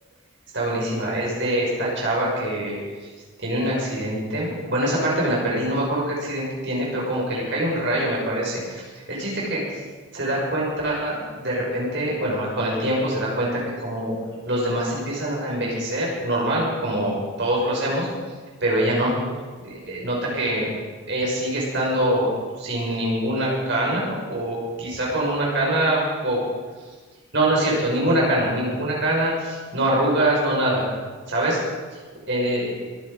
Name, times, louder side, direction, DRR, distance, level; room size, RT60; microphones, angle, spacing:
voice 1, 0.5-2.8 3.4-8.8 9.1-9.6 10.1-14.1 14.5-18.1 18.6-19.1 19.6-20.7 21.1-22.3 22.6-26.4 27.3-30.8 31.3-31.6 32.3-32.8, right 1 dB, 55° right, -4 dB, 6.1 m, -24 dB
23.5 x 10.0 x 5.2 m, 1.5 s
head